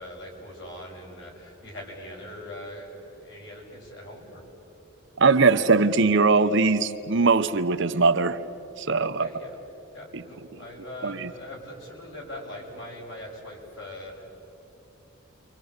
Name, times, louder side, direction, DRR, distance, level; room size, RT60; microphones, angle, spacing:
voice 1, 0.0-4.4 9.0-9.6 9.9-14.2, left 1 dB, 60° left, -1 dB, 6.5 m, -41 dB
voice 2, 5.2-8.4 8.8-9.3 10.1-10.2 11.0-11.3, right 4 dB, 60° right, 10 dB, 0.8 m, -21 dB
29.5 x 24.5 x 8.1 m, 3.0 s
head